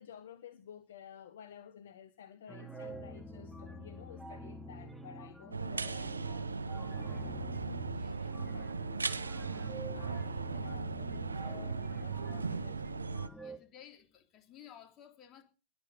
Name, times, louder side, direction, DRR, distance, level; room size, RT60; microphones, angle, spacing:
voice 1, 0.0-13.1, left 8 dB, 60° left, 1.3 m, -54 dB
sound 1, 2.5-13.6, equal, 5° right, 2.4 m, -47 dB
sound 2, 5.5-13.3, right 4 dB, 75° right, 0.9 m, -37 dB
voice 2, 7.9-8.5 13.4-15.4, left 10 dB, 30° left, 3.7 m, -56 dB
21.5 x 8.2 x 5.2 m
figure-of-eight pair, 90°, 0 cm